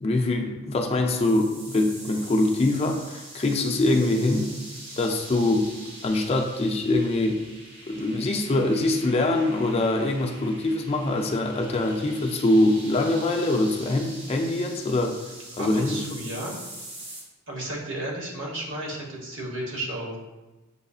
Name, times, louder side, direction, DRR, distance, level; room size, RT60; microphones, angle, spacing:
voice 1, 0.0-4.5 5.0-5.7 6.0-7.4 7.9-15.2 15.6-16.0, left 2 dB, 30° left, 2 dB, 0.4 m, -23 dB
sound 1, 1.2-17.2, right 1 dB, 45° right, 1.4 m, -43 dB
voice 2, 15.6-16.5 17.5-20.2, right 1 dB, 90° right, -3 dB, 1.2 m, -33 dB
6.6 x 2.6 x 2.3 m, 1.1 s
head